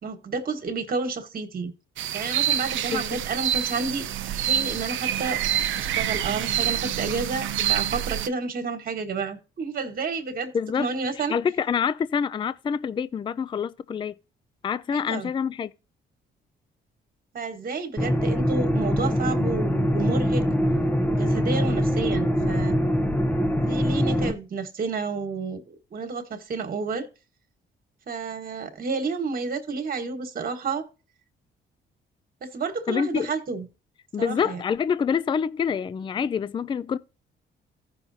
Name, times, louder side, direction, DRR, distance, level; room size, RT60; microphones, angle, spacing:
voice 1, 0.0-1.7 2.1-5.4 5.8-10.5 10.8-11.3 14.9-15.3 17.3-20.4 21.1-22.8 23.6-27.1 28.1-30.8 32.4-33.7 34.2-34.6, right 4 dB, 45° right, 1.5 m, -30 dB
sound 1, 2.0-8.3, right 11 dB, 75° right, 0.6 m, -27 dB
voice 2, 10.5-10.9 11.3-14.2 14.6-15.7 32.9-33.3 34.1-37.0, left 6 dB, 25° left, 0.3 m, -26 dB
sound 2, 18.0-24.3, equal, 10° left, 0.7 m, -23 dB
15.0 x 5.7 x 2.7 m
cardioid pair, 90°, 20 cm